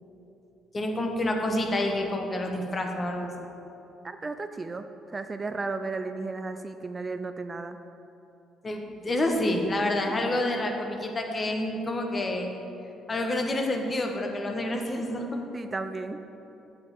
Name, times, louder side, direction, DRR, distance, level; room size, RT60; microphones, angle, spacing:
voice 1, 0.7-3.3 8.6-12.5 13.1-15.3, left 1 dB, 35° left, 3 dB, 1.2 m, -28 dB
voice 2, 4.0-7.8 10.0-10.1 15.5-16.2, right 3 dB, 30° right, 9 dB, 0.4 m, -34 dB
8.0 x 5.0 x 7.0 m, 2.9 s
hypercardioid pair, 50°, 0 cm